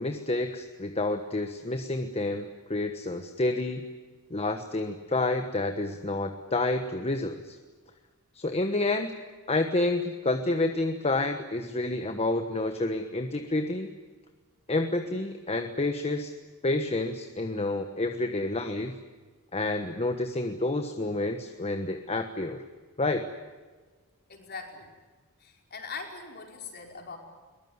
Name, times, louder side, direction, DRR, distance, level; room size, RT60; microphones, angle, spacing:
voice 1, 0.0-3.9 4.3-7.6 8.3-9.2 9.5-13.9 14.7-16.3 16.6-19.0 19.5-22.6 23.0-23.3, left 2 dB, 30° left, 7 dB, 1.3 m, -29 dB
voice 2, 24.3-24.9 25.4-27.2, left 4 dB, 45° left, 2 dB, 5.0 m, -41 dB
22.5 x 21.0 x 9.7 m, 1.4 s
head